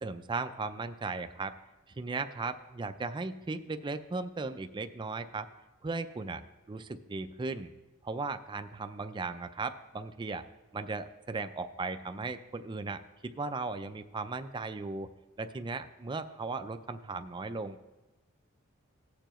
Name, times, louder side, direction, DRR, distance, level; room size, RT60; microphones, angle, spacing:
voice 1, 0.0-1.5 2.0-5.5 5.8-6.4 6.7-7.7 8.0-10.4 10.7-15.1 15.4-17.8, right 3 dB, 20° right, 9 dB, 0.4 m, -37 dB
17.5 x 6.7 x 3.0 m, 1.1 s
head